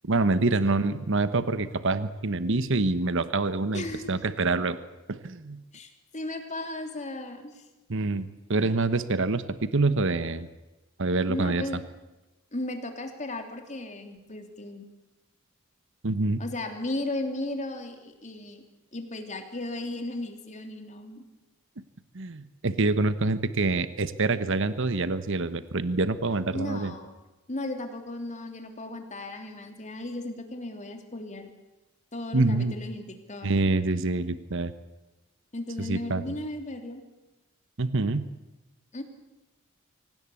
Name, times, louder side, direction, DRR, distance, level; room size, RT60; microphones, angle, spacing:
voice 1, 0.0-4.8 5.1-5.6 7.9-10.5 11.0-11.6 16.0-16.4 22.1-26.9 32.3-32.7 33.4-34.7 35.8-36.2 37.8-38.3, right 3 dB, 65° right, 13 dB, 1.1 m, -26 dB
voice 2, 0.6-1.0 3.7-4.2 5.7-7.7 11.3-11.8 12.5-14.9 16.4-18.6 18.9-21.2 26.5-27.2 27.5-31.5 32.1-33.5 35.5-37.0 38.9-39.0, left 2 dB, 35° left, 5 dB, 3.2 m, -35 dB
24.5 x 18.5 x 8.5 m, 1.0 s
head